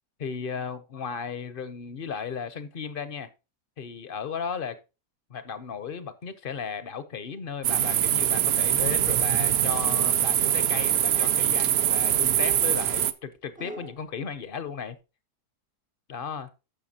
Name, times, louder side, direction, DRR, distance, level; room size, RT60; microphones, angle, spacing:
voice 1, 0.2-3.3 3.8-4.8 5.3-15.0 16.1-16.5, left 6 dB, 50° left, 0.7 m, -35 dB
sound 1, 7.6-13.1, right 10 dB, 70° right, 0.6 m, -23 dB
sound 2, 9.8-10.6 11.0-11.7 12.4-14.1, right 1 dB, 15° right, 0.3 m, -44 dB
13.5 x 5.7 x 2.8 m
omnidirectional pair, 1.7 m